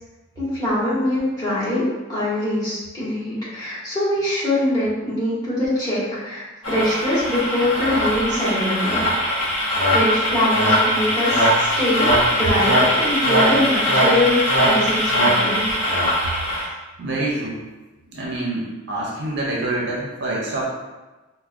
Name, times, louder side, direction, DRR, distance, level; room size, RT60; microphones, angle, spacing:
voice 1, 0.4-1.8 2.1-9.0 9.9-15.6, left 1 dB, 20° left, -11 dB, 1.3 m, -23 dB
sound 1, 6.6-16.7, equal, 65° left, 0.8 m, -20 dB
voice 2, 17.0-17.6 18.1-20.6, right 2 dB, 55° right, -3 dB, 0.6 m, -26 dB
4.4 x 2.2 x 2.4 m, 1.2 s
head